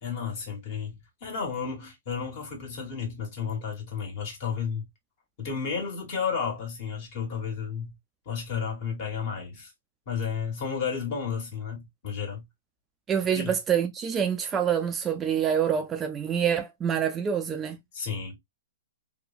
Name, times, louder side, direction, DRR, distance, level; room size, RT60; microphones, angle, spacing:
voice 1, 0.0-0.9 1.2-4.8 5.4-7.9 8.2-9.7 10.1-12.4 13.3-13.5 17.9-18.4, left 6 dB, 45° left, 1.4 m, -32 dB
voice 2, 13.1-17.8, right 8 dB, 20° right, 0.3 m, -26 dB
2.9 x 2.1 x 2.4 m
hypercardioid pair, 130°, 0 cm